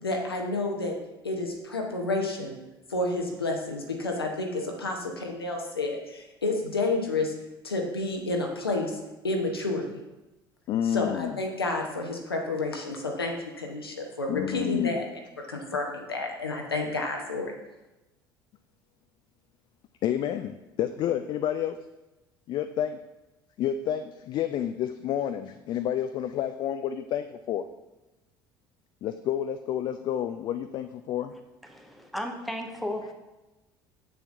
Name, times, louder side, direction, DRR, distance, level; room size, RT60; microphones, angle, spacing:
voice 1, 0.0-0.9 1.2-2.6 2.9-7.3 7.6-10.0 10.8-15.0 15.5-17.5, left 2 dB, 85° left, 2 dB, 0.9 m, -30 dB
voice 2, 10.7-11.3 14.3-15.0 20.0-21.8 22.5-23.0 23.6-27.6 29.0-31.3, left 10 dB, 40° left, 9 dB, 0.3 m, -29 dB
voice 3, 31.3-33.1, left 1 dB, ahead, 3 dB, 0.9 m, -35 dB
7.0 x 6.9 x 2.6 m, 1.0 s
figure-of-eight pair, 60°, 12 cm